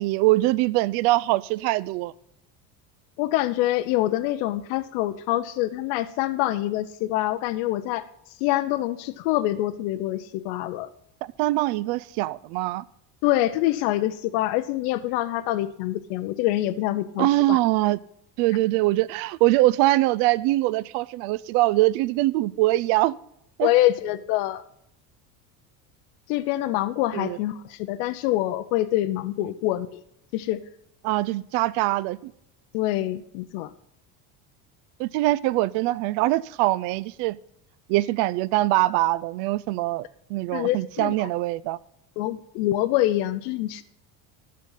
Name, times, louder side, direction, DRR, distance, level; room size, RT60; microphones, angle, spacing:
voice 1, 0.0-2.1 11.2-12.8 17.2-18.0 18.4-23.1 23.6-23.7 27.1-27.4 31.0-32.3 35.0-37.4 37.9-40.0 40.3-41.8, right 18 dB, 70° right, 0.5 m, -23 dB
voice 2, 3.2-8.1 8.4-10.9 13.2-17.6 23.6-24.6 26.3-30.0 30.3-30.6 32.7-33.7 40.5-41.3 42.2-43.8, left 15 dB, 80° left, 0.7 m, -25 dB
12.5 x 7.5 x 5.6 m
cardioid pair, 150°, 39 cm